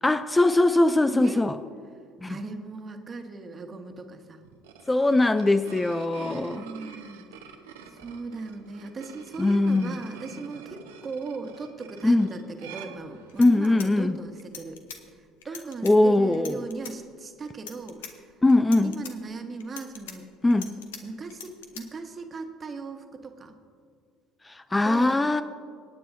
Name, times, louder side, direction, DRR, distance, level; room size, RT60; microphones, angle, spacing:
voice 1, 0.0-1.6 2.2-2.4 4.9-6.6 9.4-10.0 12.0-12.3 13.4-14.2 15.8-16.6 18.4-18.9 20.4-20.7 24.4-25.4, left 2 dB, 15° left, 11 dB, 0.4 m, -21 dB
voice 2, 1.1-1.4 2.3-4.4 6.2-7.3 7.9-14.8 15.1-18.3 18.8-20.2 20.6-23.6 24.8-25.2, right 4 dB, 35° right, 5 dB, 1.4 m, -38 dB
sound 1, 4.4-13.7, right 6 dB, 75° right, 1.0 m, -47 dB
sound 2, 13.0-13.1 13.3-15.0 15.4-15.9 16.3-16.9 17.5-18.1 18.5-19.1 19.6-21.0 21.3-21.8, left 7 dB, 80° left, 1.0 m, -42 dB
25.5 x 9.3 x 2.7 m, 2.2 s
hypercardioid pair, 60°, 0 cm